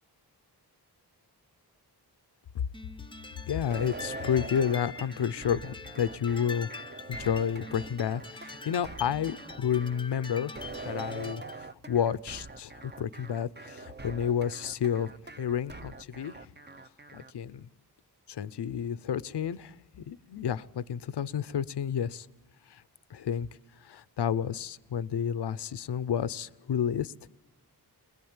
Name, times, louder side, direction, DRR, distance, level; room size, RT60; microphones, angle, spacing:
sound 1, 2.7-11.6, left 3 dB, 10° left, 0.7 m, -44 dB
voice 1, 3.5-6.7 7.1-10.6 10.8-15.1 15.4-16.5 17.1-17.7 18.3-22.3 22.7-22.8 23.1-23.5 23.8-27.1, left 8 dB, 80° left, 16 dB, 0.7 m, -31 dB
sound 2, 3.7-17.3, right 3 dB, 25° right, 0.8 m, -44 dB
22.0 x 21.5 x 8.9 m, 1.0 s
wide cardioid pair, 95°, 40 cm